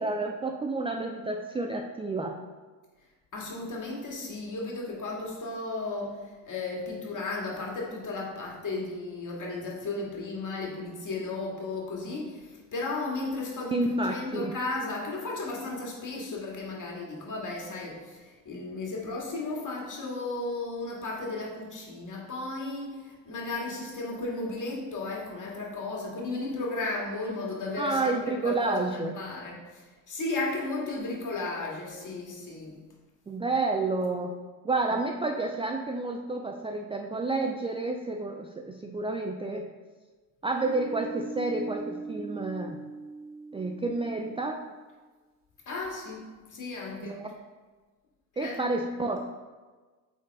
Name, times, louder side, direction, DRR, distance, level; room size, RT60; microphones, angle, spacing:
voice 1, 0.0-2.4 13.7-14.5 27.8-29.2 33.3-34.4 34.6-39.7 40.4-42.8 43.5-44.6 47.0-47.3 48.4-49.2, right 2 dB, 15° right, 3 dB, 0.4 m, -30 dB
voice 2, 3.3-13.8 14.1-28.2 28.4-32.8 45.7-47.2 48.4-48.6, left 3 dB, 40° left, -2 dB, 2.1 m, -34 dB
sound 1, 40.6-44.9, right 4 dB, 30° right, 0.8 m, -41 dB
8.2 x 4.0 x 3.6 m, 1.3 s
supercardioid pair, 70°, 47 cm